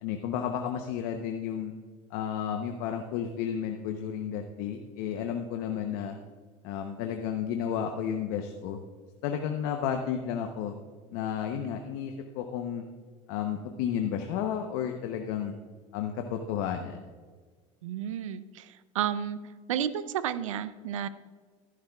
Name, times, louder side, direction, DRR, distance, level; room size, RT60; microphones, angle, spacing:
voice 1, 0.0-1.7 2.1-6.2 6.6-8.8 9.2-10.7 11.1-12.8 13.3-15.5 15.9-17.1, left 8 dB, 70° left, 5 dB, 0.9 m, -32 dB
voice 2, 17.8-19.4 19.7-21.1, right 10 dB, 90° right, 15 dB, 0.5 m, -32 dB
14.0 x 11.0 x 2.3 m, 1.5 s
hypercardioid pair, 80°, 16 cm